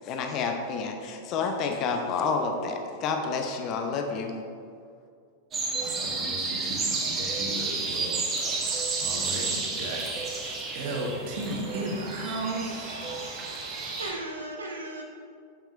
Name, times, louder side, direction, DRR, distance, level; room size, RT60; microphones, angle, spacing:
voice 1, 0.0-4.3, left 4 dB, 40° left, 4 dB, 0.7 m, -29 dB
sound 1, 5.5-14.1, right 4 dB, 25° right, 1.1 m, -31 dB
voice 2, 5.8-10.5 10.7-13.0, right 1 dB, 50° right, 0 dB, 1.3 m, -35 dB
voice 3, 11.6-15.0, right 2 dB, 75° right, 1 dB, 0.7 m, -40 dB
6.9 x 5.8 x 4.0 m, 2.3 s
figure-of-eight pair, 90°, 0 cm